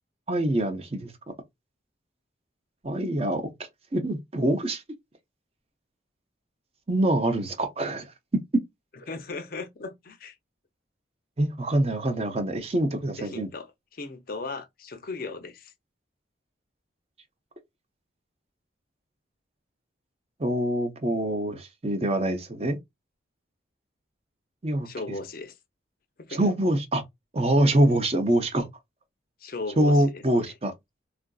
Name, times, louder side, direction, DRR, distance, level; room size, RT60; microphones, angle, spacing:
voice 1, 0.3-1.1 2.8-4.8 6.9-8.1 11.4-13.5 20.4-22.8 24.6-24.9 26.3-27.0 27.3-28.7 29.8-30.7, right 1 dB, 30° right, 0.6 m, -25 dB
voice 2, 9.1-10.3 13.2-13.7 13.9-15.7 24.9-25.6 26.2-26.4 29.4-30.2, left 3 dB, 50° left, 0.5 m, -37 dB
3.6 x 2.5 x 2.3 m
head